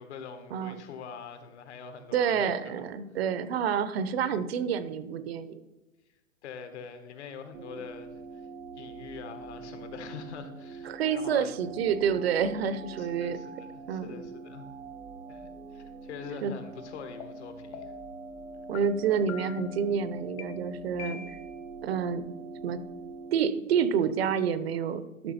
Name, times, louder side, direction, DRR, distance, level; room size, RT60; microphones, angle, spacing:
voice 1, 0.0-2.7 6.4-8.5 8.7-11.5 13.0-14.7 15.3-17.9, left 6 dB, 55° left, 8 dB, 1.5 m, -44 dB
voice 2, 2.1-5.6 10.8-13.4 13.9-14.2 16.4-16.5 18.7-21.4 21.8-22.2 22.6-22.8 23.3-25.3, right 7 dB, 50° right, 13 dB, 0.8 m, -28 dB
sound 1, 7.5-23.4, right 3 dB, 80° right, 1.0 m, -44 dB
sound 2, 17.2-17.3 17.7-18.1 18.7-18.8 19.3-19.7 20.4-20.5 21.0-21.6, left 8 dB, 25° left, 0.6 m, -43 dB
12.5 x 6.0 x 4.2 m, 1.1 s
hypercardioid pair, 150°, 40 cm